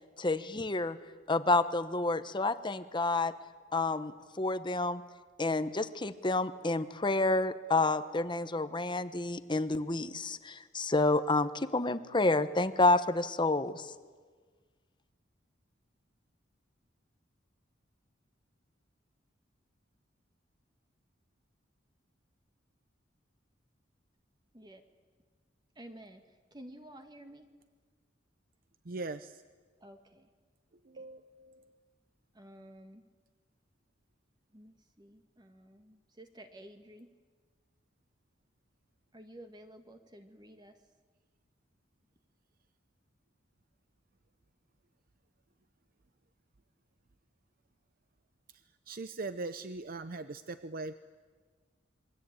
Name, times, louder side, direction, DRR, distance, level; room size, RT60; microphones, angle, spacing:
voice 1, 0.2-1.0 1.3-3.3 3.7-5.0 5.4-13.9, left 2 dB, 25° left, 11 dB, 1.1 m, -29 dB
voice 2, 25.8-26.2 26.5-27.4 29.8-30.0 32.4-33.0 34.5-34.7 35.0-35.8 36.2-37.1 39.1-40.7, right 1 dB, 25° right, 5 dB, 1.8 m, -51 dB
voice 3, 28.8-29.4 30.8-31.7 48.9-50.9, right 3 dB, 50° right, 12 dB, 0.7 m, -40 dB
27.5 x 23.0 x 8.9 m, 1.5 s
head